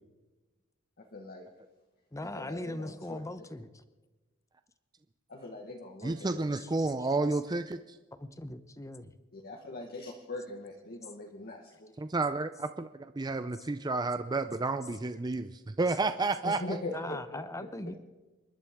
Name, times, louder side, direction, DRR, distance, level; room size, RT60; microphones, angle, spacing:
voice 1, 1.0-1.5 2.2-3.2 5.3-6.4 9.3-11.9 16.4-17.4, left 2 dB, 45° left, 0 dB, 1.3 m, -41 dB
voice 2, 2.1-3.8 6.6-6.7 7.0-7.4 8.2-9.1 13.5-13.7 16.9-18.0, left 1 dB, 15° left, 11 dB, 0.8 m, -40 dB
voice 3, 6.0-7.8 12.0-12.9 13.2-16.8, right 3 dB, 20° right, 10 dB, 0.4 m, -31 dB
29.0 x 11.5 x 3.6 m, 1.2 s
head